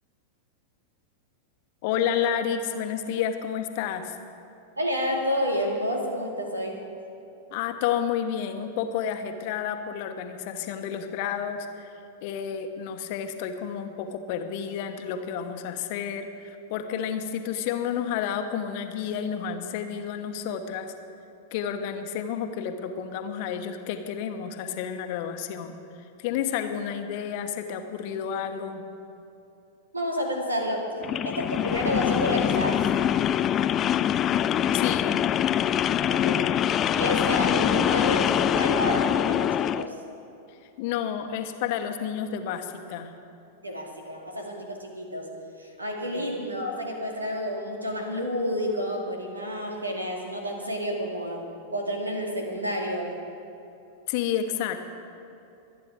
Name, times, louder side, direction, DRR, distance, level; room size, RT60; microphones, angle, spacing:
voice 1, 1.8-4.2 7.5-11.9 12.2-20.9 21.5-25.8 26.2-28.9 34.7-35.2 40.8-43.1 46.1-46.3 54.1-54.9, left 8 dB, 50° left, 7 dB, 1.2 m, -30 dB
voice 2, 4.8-6.8 29.9-30.9 31.2-32.8 36.0-36.6 36.9-39.9 43.6-45.3 45.6-51.5 51.7-53.1, equal, 85° right, 1 dB, 2.3 m, -29 dB
sound 1, 31.0-39.9, left 10 dB, 30° left, 0.4 m, -24 dB
24.5 x 9.3 x 4.7 m, 2.8 s
figure-of-eight pair, 95°, 0 cm